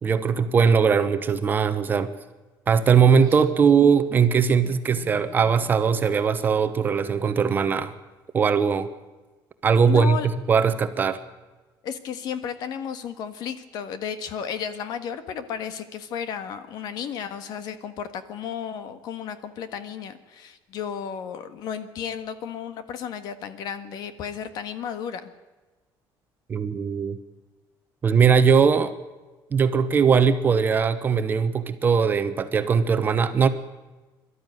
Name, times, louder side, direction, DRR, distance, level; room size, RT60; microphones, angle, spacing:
voice 1, 0.0-2.1 2.7-7.9 8.3-8.9 9.6-11.2 26.5-27.2 28.0-28.9 29.5-33.5, right 6 dB, 25° right, 9 dB, 1.0 m, -20 dB
Laughter, 3.0-7.5, right 10 dB, 45° right, 1.4 m, -42 dB
voice 2, 9.8-10.3 11.8-25.3, left 8 dB, 55° left, 11 dB, 1.6 m, -33 dB
23.0 x 13.0 x 9.3 m, 1.2 s
cardioid pair, 175°, 8 cm